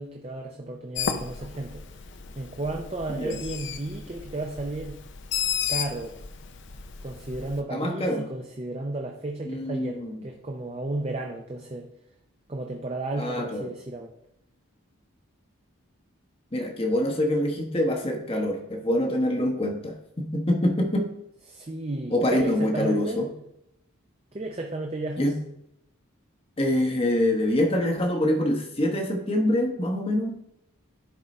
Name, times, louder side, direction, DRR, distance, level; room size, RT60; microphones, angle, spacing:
voice 1, 0.0-1.8 2.4-5.0 5.7-6.2 7.0-11.9 12.5-14.1 21.5-23.2 24.3-25.3, right 2 dB, 30° right, 2 dB, 0.6 m, -33 dB
Bird, 1.0-7.6, left 7 dB, 55° left, 0.6 m, -34 dB
voice 2, 3.1-3.4 7.7-8.3 9.4-10.2 13.2-13.7 16.5-21.1 22.1-23.3 25.2-25.3 26.6-30.3, left 1 dB, 25° left, 2 dB, 0.9 m, -25 dB
10.5 x 3.8 x 4.2 m, 0.78 s
head